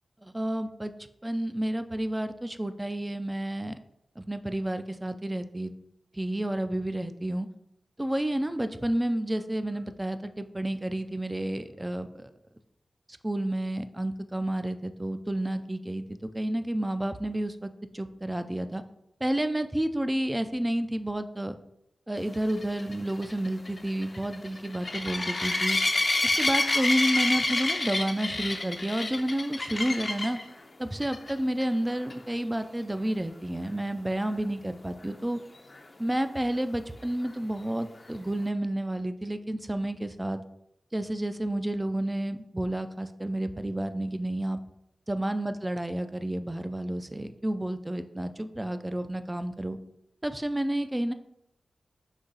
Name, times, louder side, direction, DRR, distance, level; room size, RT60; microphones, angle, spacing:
voice 1, 0.2-0.9 1.2-3.7 4.2-5.7 6.1-7.5 8.0-12.3 13.2-18.8 19.2-21.6 22.1-25.8 26.2-30.4 30.8-35.4 36.0-40.4 40.9-44.6 45.1-49.8 50.2-51.1, right 1 dB, 15° right, 10 dB, 0.3 m, -30 dB
sound 1, 22.5-30.4 31.0-31.3 31.6-31.7 32.1-32.2 35.8-35.9, left 2 dB, 45° left, 0.5 m, -28 dB
4.0 x 2.9 x 3.9 m, 0.80 s
cardioid pair, 50°, 0 cm